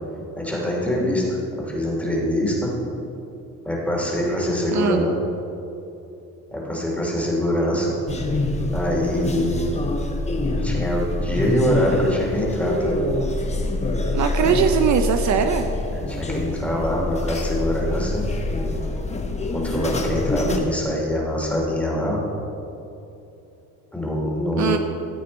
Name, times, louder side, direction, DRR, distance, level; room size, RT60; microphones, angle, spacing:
voice 1, 0.4-2.7 3.6-5.1 6.5-7.9 8.7-9.7 10.6-12.9 14.4-14.5 15.9-18.8 19.5-22.5 23.9-24.8, equal, 5° left, -3 dB, 2.7 m, -24 dB
voice 2, 4.7-5.1 14.1-15.7 24.6-24.8, right 7 dB, 55° right, 7 dB, 0.7 m, -20 dB
sound 1, 8.1-20.6, left 2 dB, 20° left, 1.1 m, -25 dB
14.0 x 8.4 x 4.2 m, 2.8 s
cardioid pair, 120°, 34 cm